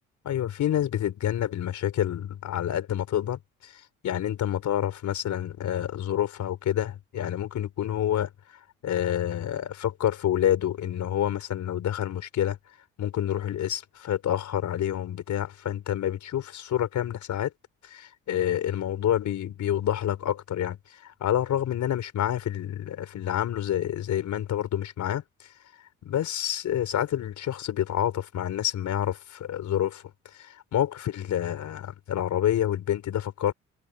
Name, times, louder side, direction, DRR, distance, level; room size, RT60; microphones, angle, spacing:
voice 1, 0.2-8.3 8.8-12.6 13.0-17.5 17.8-25.2 26.0-30.0 30.3-33.5, left 11 dB, 70° left, 4.1 m, -28 dB
cardioid pair, 90°, 30 cm